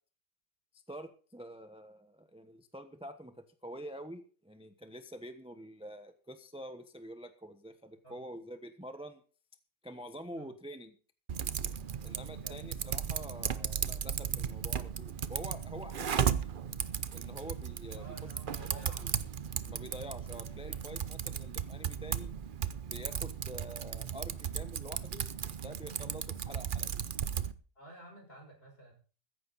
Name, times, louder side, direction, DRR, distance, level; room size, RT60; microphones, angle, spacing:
voice 1, 0.7-3.4 3.6-9.2 9.8-10.9 12.0-16.6 17.1-18.1 18.6-19.1 19.7-22.3 22.9-25.3 25.6-27.1, right 1 dB, 5° right, 8 dB, 0.7 m, -47 dB
Typing, 11.3-27.5, right 8 dB, 75° right, 0.4 m, -36 dB
voice 2, 12.0-12.6 17.9-19.2 20.7-20.8 21.8-21.9 27.7-28.9, right 2 dB, 30° left, 1 dB, 6.1 m, -53 dB
15.5 x 14.5 x 4.1 m, 0.39 s
omnidirectional pair, 1.9 m